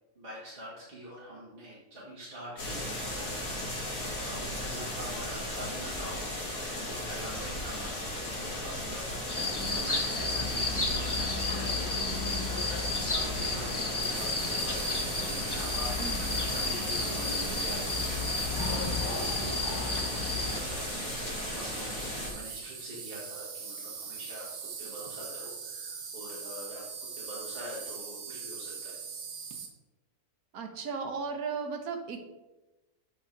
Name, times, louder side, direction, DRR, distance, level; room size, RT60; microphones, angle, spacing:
voice 1, 0.2-3.3 3.9-6.2 6.8-14.8 15.5-15.9 16.2-17.8 18.6-19.8 20.1-24.5 24.8-29.0, right 1 dB, 35° right, -7 dB, 2.1 m, -44 dB
sound 1, 2.6-22.3, left 1 dB, 60° left, 2.6 m, -36 dB
sound 2, 9.3-20.6, left 3 dB, 20° left, 0.6 m, -32 dB
Insect, 12.3-29.7, right 6 dB, 90° right, 1.6 m, -41 dB
voice 2, 16.0-16.4 18.6-18.9 30.5-32.2, right 5 dB, 70° right, 5 dB, 1.5 m, -36 dB
8.3 x 5.4 x 4.5 m, 1.1 s
omnidirectional pair, 1.6 m